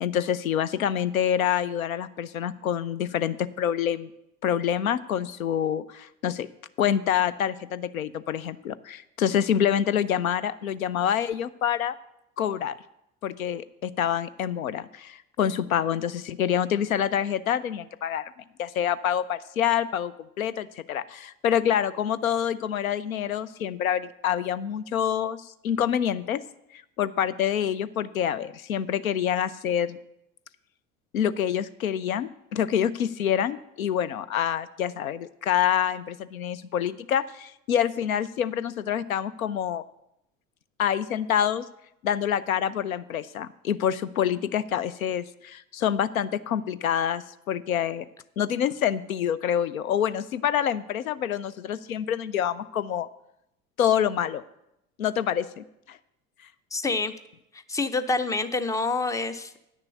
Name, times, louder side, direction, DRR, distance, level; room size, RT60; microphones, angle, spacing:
voice 1, 0.0-4.1 4.4-6.5 6.8-11.9 12.4-12.8 13.2-18.3 18.6-26.4 26.7-30.0 31.1-39.8 40.8-41.7 42.0-48.1 48.4-53.1 53.8-54.4 55.0-56.0, left 9 dB, 80° left, 17 dB, 0.5 m, -27 dB
voice 2, 56.7-57.1 57.7-59.6, left 3 dB, 10° left, 13 dB, 0.4 m, -27 dB
9.5 x 6.7 x 6.8 m, 0.83 s
figure-of-eight pair, 65°, 41 cm